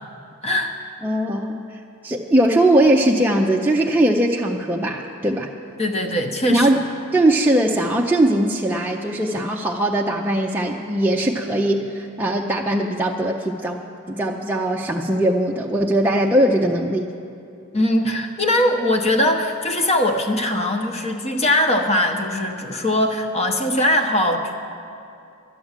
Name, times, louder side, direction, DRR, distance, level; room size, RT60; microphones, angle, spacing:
voice 1, 0.4-0.7 5.8-6.8 17.7-24.6, left 1 dB, 30° left, 4 dB, 1.0 m, -21 dB
voice 2, 1.0-1.6 2.0-5.5 6.5-6.8 7.1-13.8 14.1-17.1, right 1 dB, 10° right, -2 dB, 0.5 m, -20 dB
12.5 x 10.0 x 7.3 m, 2.5 s
head